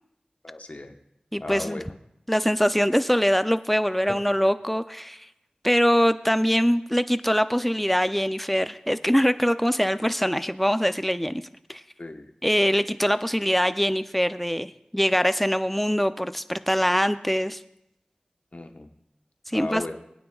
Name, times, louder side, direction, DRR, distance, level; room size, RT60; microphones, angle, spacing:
voice 1, 0.4-0.9 1.4-1.8 12.0-12.3 18.5-18.9 19.5-19.9, left 2 dB, 55° left, 4 dB, 1.1 m, -35 dB
voice 2, 1.3-1.8 2.3-5.2 5.6-11.4 11.7-11.8 12.4-17.6 19.5-19.8, equal, 5° left, 11 dB, 0.5 m, -23 dB
21.0 x 9.4 x 2.4 m, 0.80 s
wide cardioid pair, 55°, 3 cm